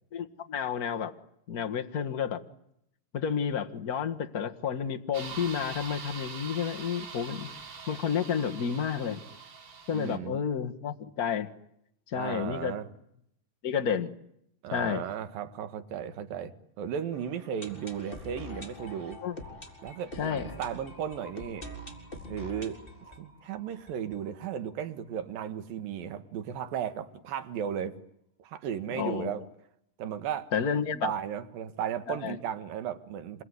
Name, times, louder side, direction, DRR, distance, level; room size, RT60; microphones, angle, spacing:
voice 1, 0.1-1.1 1.5-2.4 3.1-7.5 7.9-9.2 9.9-11.5 12.1-12.8 13.6-14.1 14.7-15.1 19.2-19.4 20.2-20.4 28.9-29.3 30.5-31.1 32.1-32.4, left 7 dB, 40° left, 1.3 m, -31 dB
sound 1, 5.1-10.2, right 5 dB, 55° right, 4.5 m, -43 dB
voice 2, 9.9-10.4 12.1-12.9 14.6-19.2 19.8-21.7 22.3-28.0 28.4-29.4 30.0-33.4, right 9 dB, 85° right, 3.3 m, -35 dB
sound 2, 17.1-24.9 25.2-25.3 25.4-25.5 26.1-26.2, left 1 dB, 15° left, 4.5 m, -45 dB
27.5 x 22.0 x 9.8 m
omnidirectional pair, 3.9 m